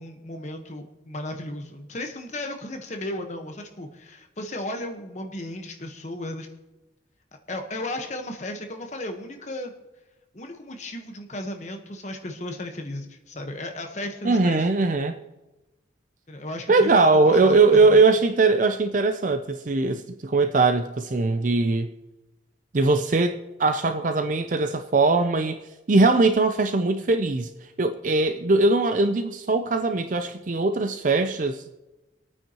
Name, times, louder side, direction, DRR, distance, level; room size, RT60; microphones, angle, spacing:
voice 1, 0.0-6.5 7.5-9.7 10.3-14.7 16.3-18.0, left 1 dB, 35° left, 4 dB, 1.2 m, -35 dB
voice 2, 14.2-15.2 16.7-21.9 22.7-25.6 25.9-27.5 27.8-31.7, right 3 dB, 40° right, 8 dB, 0.5 m, -21 dB
25.5 x 9.0 x 3.0 m, 1.0 s
head